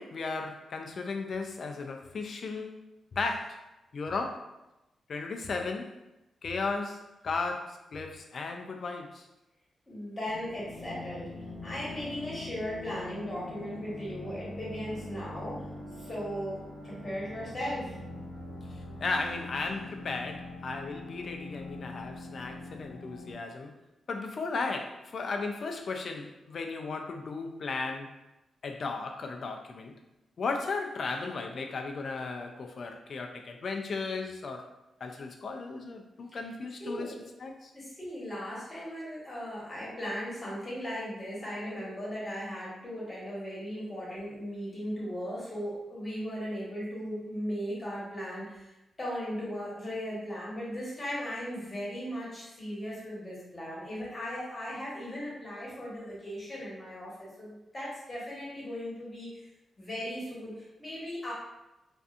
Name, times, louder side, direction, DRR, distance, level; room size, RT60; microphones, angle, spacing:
voice 1, 0.0-2.8 3.1-3.6 3.9-4.5 5.1-6.0 6.4-9.3 19.0-23.8 24.1-28.1 28.6-30.0 30.4-34.6 35.0-37.1 37.4-37.7, left 4 dB, 55° left, 4 dB, 0.3 m, -35 dB
voice 2, 9.9-11.3 11.6-15.6 16.0-16.6 16.8-17.9 36.8-37.3 37.7-48.7 49.0-59.4 59.8-61.3, equal, 30° left, -6 dB, 1.2 m, -37 dB
sound 1, 10.3-23.3, left 2 dB, 85° left, 0.8 m, -43 dB
2.6 x 2.3 x 2.4 m, 0.95 s
cardioid pair, 100°, 0 cm